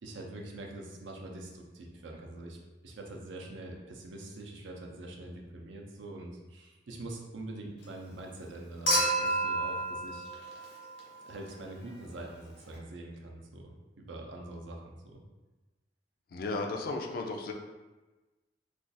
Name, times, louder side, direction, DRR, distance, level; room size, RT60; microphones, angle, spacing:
voice 1, 0.0-2.6 2.8-10.3 11.3-15.2, right 2 dB, 80° right, 1 dB, 0.5 m, -44 dB
Human group actions / Chink clink / Liquid, 8.9-11.2 12.7-12.8, right 1 dB, 80° left, 1.0 m, -30 dB
voice 2, 16.3-17.5, left 3 dB, 50° left, 3 dB, 0.4 m, -34 dB
2.4 x 2.3 x 3.9 m, 1.2 s
head